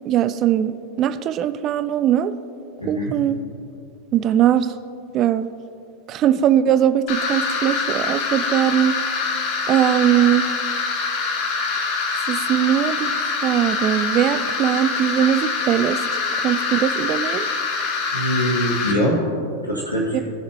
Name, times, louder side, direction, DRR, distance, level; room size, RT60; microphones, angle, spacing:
voice 1, 0.1-2.3 2.9-3.4 4.1-4.7 5.1-5.5 6.1-9.0 9.7-10.4 12.3-13.1 13.4-16.0 16.4-17.5 20.1-20.2, right 10 dB, 35° right, 14 dB, 0.4 m, -20 dB
voice 2, 2.8-3.1 18.1-19.1 19.7-20.2, equal, 90° left, -9 dB, 2.1 m, -23 dB
sound 1, 7.1-18.9, left 4 dB, 45° left, 1.4 m, -24 dB
17.0 x 7.3 x 3.0 m, 2.5 s
figure-of-eight pair, 90°, 0 cm